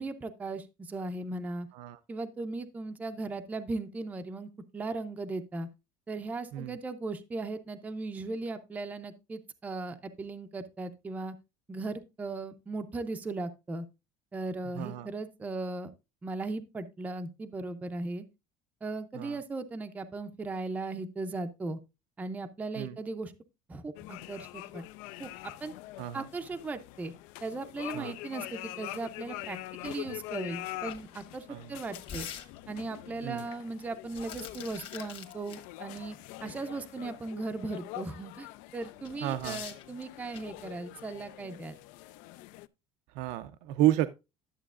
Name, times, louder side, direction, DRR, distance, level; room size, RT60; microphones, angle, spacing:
voice 1, 0.0-1.7 2.1-5.7 6.1-11.4 11.7-13.9 14.3-15.9 16.2-18.2 18.8-21.8 22.2-23.3 23.7-24.8 25.2-25.3 25.6-25.7 26.1-27.1 27.4-29.6 29.8-32.3 32.7-36.2 36.4-41.8, right 3 dB, 10° right, 0.5 m, -37 dB
voice 2, 14.7-15.1 19.1-19.4 22.8-23.0 26.0-26.3 27.9-28.1 31.5-31.7 33.2-33.5 39.2-39.6 43.1-44.1, right 14 dB, 70° right, 0.5 m, -31 dB
sound 1, 23.9-42.7, left 18 dB, 75° left, 0.4 m, -44 dB
sound 2, 29.8-29.9 30.3-30.4 30.8-32.9 33.8-35.6 36.0-36.1 38.8-40.7, left 8 dB, 40° left, 1.4 m, -45 dB
11.5 x 7.4 x 2.4 m
cardioid pair, 170°, 13 cm